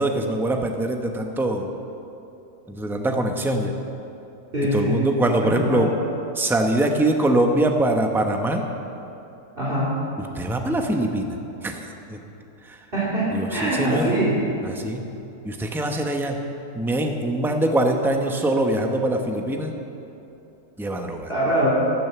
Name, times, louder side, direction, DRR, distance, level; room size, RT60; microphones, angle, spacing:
voice 1, 0.0-1.7 2.7-3.7 4.7-5.9 6.4-8.7 10.2-11.3 11.6-11.8 12.1-12.2 13.3-14.1 14.6-15.0 15.4-16.4 16.7-19.7 20.8-21.3, right 1 dB, ahead, 3 dB, 0.6 m, -23 dB
voice 2, 4.5-5.0 5.4-5.9 9.6-9.9 12.9-13.2 13.5-14.3 21.3-21.7, right 1 dB, 35° right, -8 dB, 3.5 m, -23 dB
14.0 x 9.4 x 6.9 m, 2.9 s
omnidirectional pair, 1.6 m